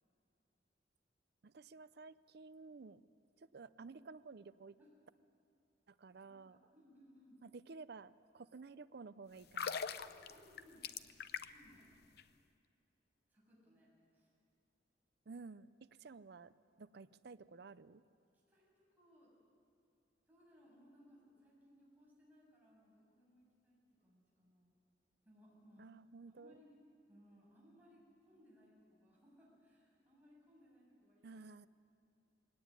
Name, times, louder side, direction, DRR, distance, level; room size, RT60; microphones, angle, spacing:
voice 1, 1.4-3.0 3.4-4.8 5.9-6.6 7.4-9.9 15.3-18.0 25.8-26.6 31.2-31.7, right 4 dB, 60° right, 15 dB, 0.6 m, -53 dB
voice 2, 6.2-7.4 9.9-10.9 11.5-11.9 13.3-14.3 18.5-19.3 20.3-24.7 25.2-25.9 26.3-26.8 27.1-31.5, equal, 10° right, -6 dB, 7.4 m, -65 dB
sound 1, 9.4-11.7 12.0-12.2, left 6 dB, 60° left, 0.7 m, -42 dB
21.5 x 17.5 x 9.8 m, 2.5 s
head